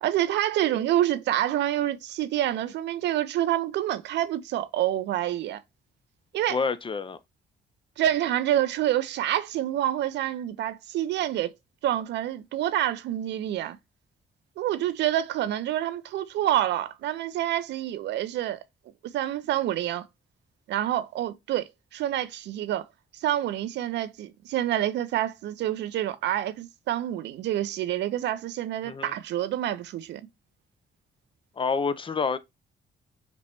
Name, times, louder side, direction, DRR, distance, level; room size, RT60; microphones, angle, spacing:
voice 1, 0.0-5.6 6.3-6.6 8.0-11.5 11.8-13.8 14.6-18.6 19.1-20.0 20.7-22.8 23.2-30.2, right 12 dB, 80° right, 0.4 m, -27 dB
voice 2, 6.5-7.2 28.8-29.1 31.6-32.4, left 5 dB, 30° left, 0.4 m, -28 dB
5.9 x 2.1 x 2.9 m
cardioid pair, 75°, 18 cm